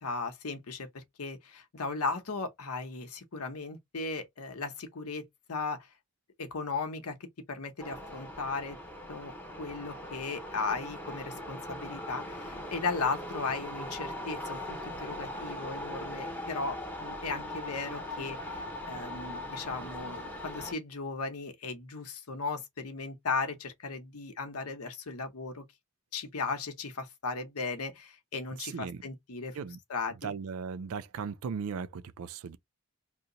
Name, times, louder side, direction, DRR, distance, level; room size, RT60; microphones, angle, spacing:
voice 1, 0.0-5.9 6.4-8.8 9.1-9.3 9.6-25.6 26.1-29.6 29.9-30.3, left 4 dB, 75° left, 0.9 m, -36 dB
sound 1, 7.8-20.7, left 1 dB, 10° left, 0.8 m, -40 dB
voice 2, 28.6-29.0 29.5-29.8 30.2-32.6, right 6 dB, 70° right, 0.4 m, -37 dB
2.8 x 2.1 x 3.8 m
head